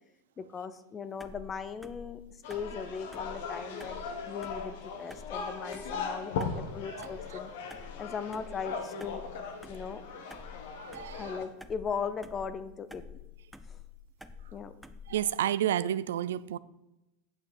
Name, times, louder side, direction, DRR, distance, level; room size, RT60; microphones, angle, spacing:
voice 1, 0.4-2.2 2.5-7.5 8.0-9.2 9.7-10.0 11.2-13.1 13.7-13.8 14.5-14.7, left 6 dB, 25° left, 13 dB, 0.8 m, -38 dB
sound 1, 1.2-15.4, left 6 dB, ahead, 0.6 m, -49 dB
sound 2, 2.4-11.4, left 5 dB, 75° left, 1.6 m, -39 dB
voice 2, 10.7-11.3 15.1-16.6, right 11 dB, 85° right, 17 dB, 0.4 m, -30 dB
9.1 x 6.1 x 6.3 m, 0.95 s
supercardioid pair, 115°, 0 cm